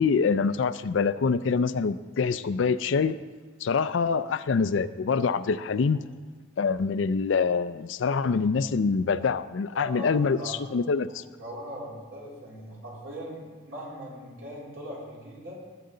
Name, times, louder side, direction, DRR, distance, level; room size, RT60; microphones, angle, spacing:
voice 1, 0.0-3.2 3.6-6.0 6.6-11.2, left 5 dB, 70° left, 14 dB, 0.4 m, -25 dB
voice 2, 9.7-10.6 11.4-15.6, equal, 90° right, -6 dB, 3.7 m, -40 dB
18.0 x 6.6 x 3.9 m, 1.4 s
head